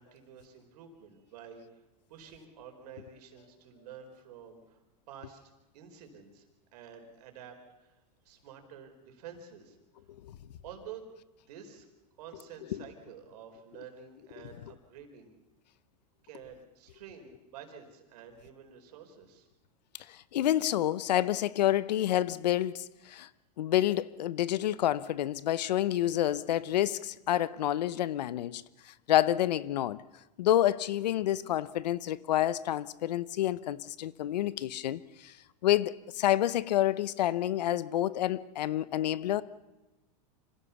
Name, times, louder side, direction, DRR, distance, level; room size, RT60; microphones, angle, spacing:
voice 1, 0.0-1.8 2.1-4.8 5.1-6.5 6.7-10.1 10.6-11.1 11.5-11.9 12.2-15.3 16.2-19.5, right 7 dB, 75° right, 5 dB, 4.5 m, -50 dB
voice 2, 20.1-23.3 23.6-30.0 30.4-35.3 35.6-39.4, left 13 dB, 90° left, 18 dB, 0.8 m, -28 dB
25.5 x 16.5 x 7.1 m, 1.0 s
supercardioid pair, 125°, 21 cm